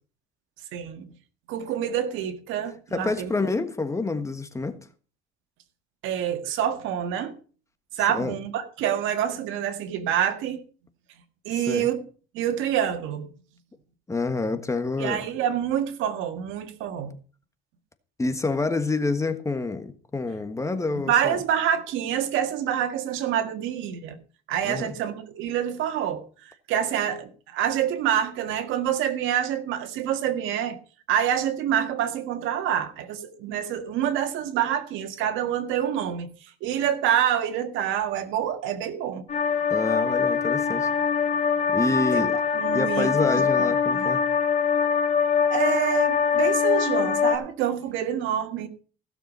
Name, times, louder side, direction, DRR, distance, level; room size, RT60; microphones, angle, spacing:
voice 1, 0.7-1.1 1.5-3.3 6.0-7.3 7.9-10.6 11.5-12.0 12.3-13.3 15.0-17.1 21.1-24.2 24.5-30.8 31.1-39.2 42.1-42.2 42.5-43.4 43.9-44.1 45.5-48.7, right 10 dB, 80° right, 1.7 m, -27 dB
voice 2, 2.9-4.8 8.1-8.3 11.7-11.9 14.1-15.3 18.2-21.4 24.6-24.9 39.7-40.9 41.7-42.4 42.7-44.2, left 3 dB, 15° left, 1.4 m, -27 dB
sound 1, 39.3-47.4, left 6 dB, 35° left, 1.8 m, -23 dB
16.0 x 6.8 x 5.4 m
cardioid pair, 130°, 20 cm